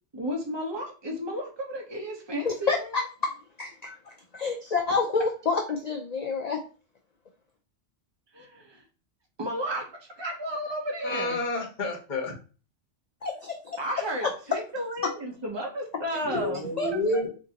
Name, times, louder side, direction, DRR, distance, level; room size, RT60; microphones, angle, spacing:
voice 1, 0.1-3.0 8.3-8.8 9.4-9.9 10.2-11.4 13.8-16.9, equal, 25° right, 0 dB, 0.7 m, -33 dB
voice 2, 2.4-2.8 3.2-3.3 3.6-6.6 13.2-13.8 16.8-16.9, left 4 dB, 90° left, 2 dB, 0.3 m, -28 dB
voice 3, 11.0-12.3 16.2-17.3, left 1 dB, 40° left, 1 dB, 1.0 m, -29 dB
3.7 x 2.6 x 2.9 m, 0.36 s
omnidirectional pair, 1.3 m